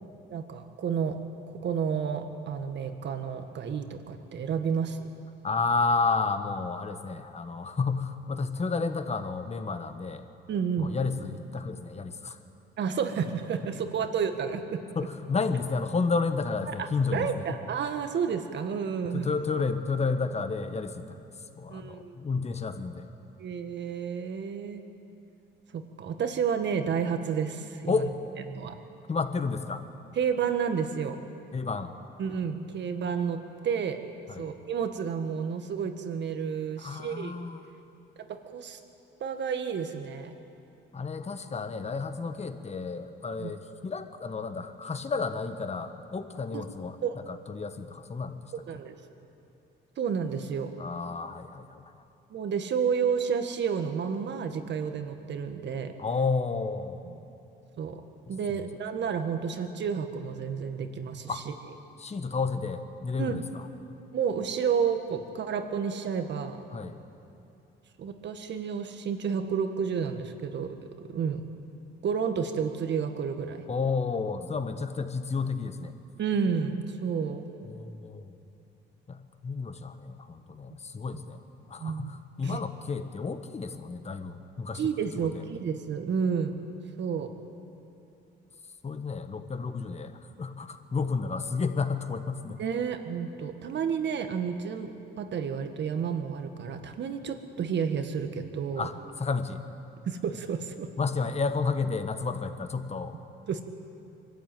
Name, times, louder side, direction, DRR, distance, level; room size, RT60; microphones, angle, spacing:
voice 1, 0.3-1.2 1.5-5.1 10.5-10.9 12.8-14.8 16.7-19.3 21.7-22.2 23.4-24.8 25.7-28.0 28.5-28.7 30.1-31.2 32.2-34.0 34.4-37.4 38.3-38.8 39.2-40.3 43.4-43.5 46.5-46.6 47.0-47.2 48.5-48.9 50.0-50.7 52.3-55.9 57.0-57.2 57.8-58.0 58.3-61.5 63.2-63.4 64.1-66.6 68.0-70.7 71.1-71.4 72.0-73.6 76.2-77.4 81.8-82.1 82.4-82.6 84.7-86.6 87.0-87.3 92.6-98.9 100.0-100.9 103.5-103.6, right 6 dB, 65° right, 7 dB, 1.7 m, -31 dB
voice 2, 5.4-10.2 10.8-12.4 14.9-17.6 19.1-21.2 21.6-23.0 27.9-28.1 29.1-29.8 31.5-31.9 34.3-34.5 36.8-37.6 40.9-48.4 50.8-51.8 56.0-57.0 58.3-58.7 61.3-61.4 62.0-63.7 66.7-67.0 73.7-75.9 77.6-78.4 79.1-81.4 81.7-84.8 85.2-85.4 88.8-92.6 98.8-99.6 101.0-103.1, left 4 dB, 35° left, 9 dB, 1.4 m, -31 dB
23.5 x 13.0 x 9.2 m, 2.8 s
cardioid pair, 90°, 20 cm